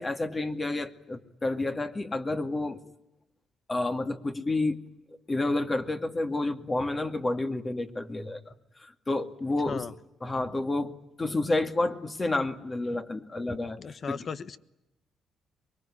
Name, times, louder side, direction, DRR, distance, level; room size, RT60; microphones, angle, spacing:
voice 1, 0.0-2.8 3.7-4.8 5.3-9.9 10.2-13.8 14.1-14.2, left 2 dB, 25° left, 7 dB, 2.3 m, -30 dB
voice 2, 13.8-14.6, left 6 dB, 50° left, 14 dB, 1.3 m, -36 dB
24.5 x 22.0 x 9.9 m, 0.88 s
cardioid pair, 90°, 0 cm